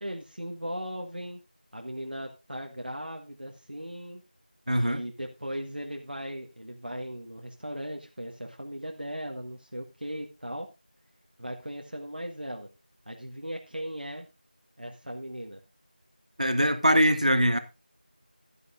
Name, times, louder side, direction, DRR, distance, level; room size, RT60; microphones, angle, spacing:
voice 1, 0.0-1.4 1.7-4.2 4.8-10.7 11.4-12.7 13.0-14.3 14.8-15.6, equal, 80° right, 1.6 m, -38 dB
voice 2, 4.7-5.0 16.4-17.6, equal, 45° right, 1.2 m, -22 dB
15.5 x 10.5 x 2.6 m
figure-of-eight pair, 180°, 5 cm